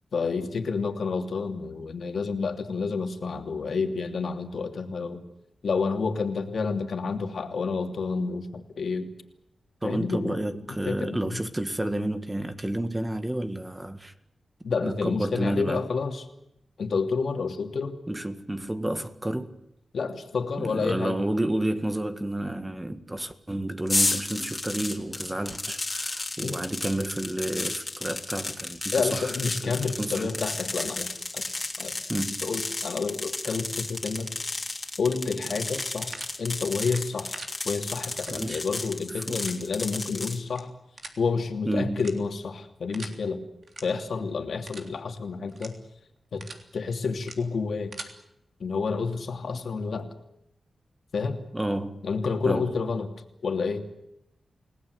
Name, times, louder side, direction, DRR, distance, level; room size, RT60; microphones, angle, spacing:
voice 1, 0.1-5.2 5.6-9.1 9.8-10.4 10.9-11.4 14.6-16.2 16.8-18.0 19.9-21.2 26.4-26.6 28.9-32.0 32.4-34.3 35.0-40.7 41.2-43.4 43.8-45.8 46.3-46.5 46.7-47.9 48.6-50.1 51.1-51.4 52.0-53.1 53.4-53.8, left 4 dB, 70° left, 2.8 m, -29 dB
voice 2, 9.8-14.1 14.8-15.8 18.1-19.5 20.6-29.3 29.6-30.4 32.1-32.4 38.3-38.7 39.3-39.4 41.7-42.0 51.5-52.0 52.5-52.7, right 1 dB, 15° right, 1.8 m, -30 dB
sound 1, 23.9-40.4, left 2 dB, 25° left, 3.2 m, -33 dB
sound 2, 35.6-36.3 36.8-37.5 38.2-38.3 38.7-38.9 39.4-39.5 40.4-40.6 41.0-41.2 41.9-42.4 42.9-43.1 43.6-43.8 44.2-44.3 44.6-44.9 45.5-45.7 46.2-46.6 47.2-47.3 47.7-48.1, right 3 dB, 55° right, 3.5 m, -41 dB
29.5 x 18.5 x 8.0 m
wide cardioid pair, 105°, 0 cm